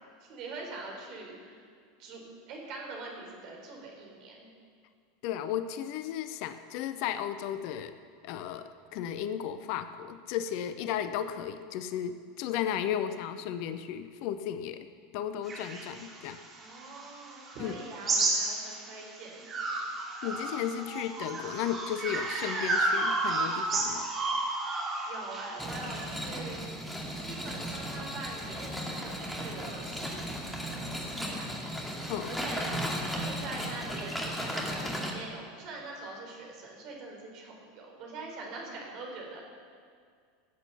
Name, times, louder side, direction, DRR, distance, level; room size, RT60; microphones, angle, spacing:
voice 1, 0.2-1.6 2.0-4.5 16.6-19.5 25.0-26.6 27.2-31.5 32.3-32.7 33.1-39.4, right 3 dB, 45° right, 0 dB, 4.2 m, -43 dB
voice 2, 5.2-7.9 8.2-14.9 15.1-16.4 17.6-17.7 20.2-24.1 32.1-32.4, left 9 dB, 50° left, 11 dB, 0.7 m, -34 dB
sound 1, 15.5-19.0 19.5-26.2, right 2 dB, 30° right, 3.1 m, -32 dB
sound 2, 25.6-35.1, equal, 5° left, 2.4 m, -36 dB
17.0 x 8.3 x 6.9 m, 2.1 s
figure-of-eight pair, 80°, 0 cm